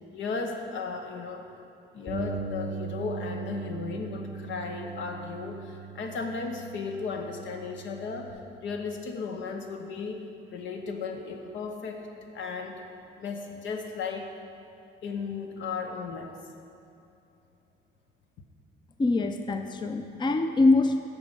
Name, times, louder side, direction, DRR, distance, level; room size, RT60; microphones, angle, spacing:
voice 1, 0.1-1.4 1.9-10.2 10.5-12.1 12.3-12.8 13.2-14.3 15.0-16.3, left 4 dB, 75° left, 4 dB, 0.9 m, -35 dB
Bass guitar, 2.1-8.3, right 4 dB, 40° left, 2.2 m, -38 dB
voice 2, 19.0-21.0, left 3 dB, 25° left, 7 dB, 0.5 m, -24 dB
8.3 x 6.2 x 5.4 m, 2.7 s
cardioid pair, 90°, 20 cm